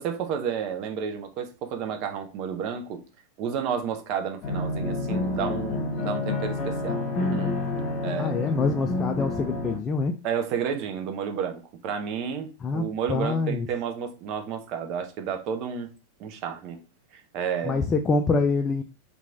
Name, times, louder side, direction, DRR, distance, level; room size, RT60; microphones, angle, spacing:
voice 1, 0.0-3.0 3.4-7.6 8.0-8.4 10.2-15.9 16.2-16.8 17.1-17.8, right 7 dB, 40° right, 0.5 m, -31 dB
sound 1, 4.4-9.8, left 2 dB, 40° left, 0.8 m, -29 dB
voice 2, 8.2-10.1 12.6-13.7 17.7-18.8, left 4 dB, 20° left, 0.3 m, -25 dB
2.9 x 2.3 x 3.7 m
figure-of-eight pair, 90°, 0 cm